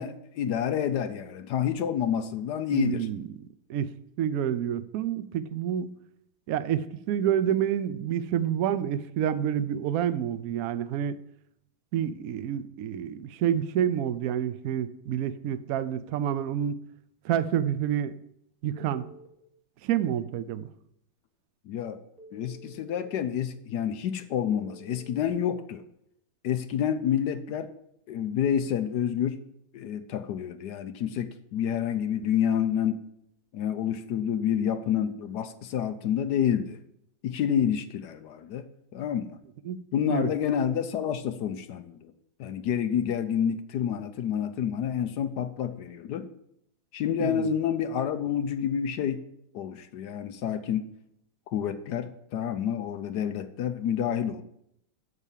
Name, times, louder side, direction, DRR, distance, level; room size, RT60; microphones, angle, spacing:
voice 1, 0.0-3.1 21.7-22.0 22.3-25.8 26.4-27.7 28.1-29.4 29.7-33.0 33.5-36.8 37.2-38.6 38.9-39.3 39.9-42.1 42.4-46.3 46.9-49.2 49.5-50.9 51.5-54.4, left 9 dB, 70° left, 1.1 m, -28 dB
voice 2, 2.7-3.3 3.7-3.9 4.2-6.0 6.5-11.2 11.9-16.8 17.2-18.1 18.6-19.1 19.8-20.7 39.6-40.3 47.2-47.5, right 9 dB, 85° right, 0.7 m, -28 dB
Telephone, 18.7-19.3 22.2-23.2 24.4-25.3, right 1 dB, 50° right, 2.4 m, -50 dB
8.3 x 6.8 x 7.3 m
omnidirectional pair, 2.2 m